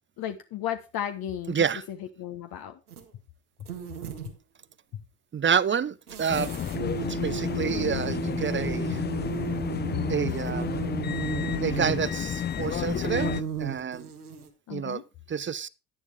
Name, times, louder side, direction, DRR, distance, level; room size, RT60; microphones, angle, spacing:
voice 1, 0.2-2.8 14.7-15.0, left 10 dB, 55° left, 1.3 m, -35 dB
voice 2, 1.5-1.8 5.3-6.6 7.1-9.0 10.1-10.7 11.6-14.1 14.7-15.0 15.3-15.7, right 7 dB, 25° right, 0.7 m, -28 dB
sound 1, 2.9-3.1 3.6-4.4 6.1-14.5, right 7 dB, 90° right, 1.8 m, -34 dB
sound 2, 6.3-13.4, left 9 dB, 25° left, 0.5 m, -31 dB
11.0 x 10.5 x 3.4 m
figure-of-eight pair, 50°, 44 cm